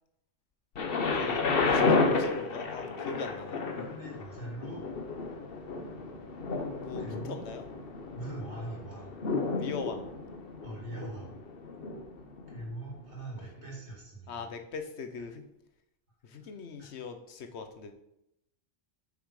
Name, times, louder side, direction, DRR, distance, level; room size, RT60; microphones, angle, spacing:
Thunder, 0.8-12.6 13.4-13.5, left 4 dB, 60° left, 1.1 m, -32 dB
voice 1, 1.1-1.7 2.0-3.6 6.8-7.6 9.6-10.0 14.3-15.4 16.2-17.9, left 5 dB, 85° left, 7 dB, 1.2 m, -40 dB
voice 2, 3.7-4.9 7.0-7.5 8.1-9.1 9.6-9.7 10.6-11.3 12.5-14.5 15.2-15.3 16.4-16.5 16.8-16.9, right 1 dB, 85° right, -3 dB, 3.0 m, -42 dB
7.0 x 6.0 x 4.8 m, 0.84 s
omnidirectional pair, 1.1 m